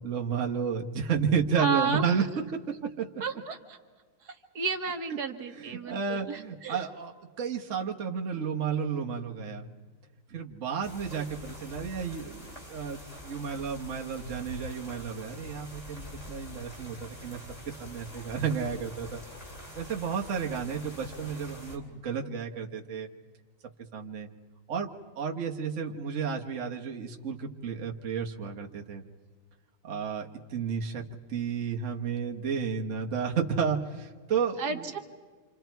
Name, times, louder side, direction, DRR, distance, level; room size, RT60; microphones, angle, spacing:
voice 1, 0.0-2.2 2.5-2.6 3.0-3.1 5.6-7.1 7.4-9.7 10.3-19.2 19.7-23.1 23.9-24.3 24.7-29.0 29.8-31.0 31.3-34.9, right 6 dB, 50° right, 1 dB, 1.5 m, -32 dB
voice 2, 1.6-2.3 3.2-3.8 4.2-6.9 34.6-35.0, right 5 dB, 75° right, 5 dB, 1.8 m, -32 dB
sound 1, 10.8-21.8, equal, 20° left, 3.4 m, -46 dB
28.0 x 27.0 x 4.6 m, 1.5 s
omnidirectional pair, 1.7 m